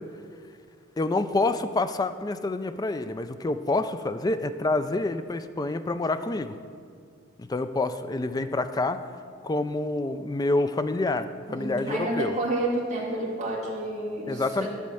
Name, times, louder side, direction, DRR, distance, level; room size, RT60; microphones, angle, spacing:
voice 1, 1.0-6.5 7.5-9.0 9.4-12.4 14.3-14.7, left 2 dB, 20° left, 10 dB, 0.3 m, -27 dB
voice 2, 11.5-14.7, right 1 dB, 35° right, -6 dB, 2.3 m, -30 dB
12.0 x 4.2 x 7.6 m, 2.2 s
head